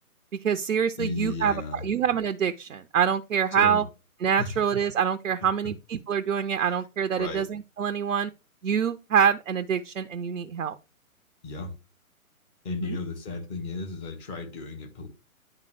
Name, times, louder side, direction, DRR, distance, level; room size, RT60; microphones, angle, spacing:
voice 1, 0.4-3.8 4.2-8.3 8.6-10.8 12.8-13.0, right 8 dB, 65° right, 0.6 m, -25 dB
voice 2, 1.0-1.9 3.5-3.8 4.4-4.6 7.1-7.5 11.4-11.7 12.6-15.1, left 3 dB, 20° left, 1.2 m, -34 dB
10.5 x 3.7 x 3.2 m
figure-of-eight pair, 135°, 43 cm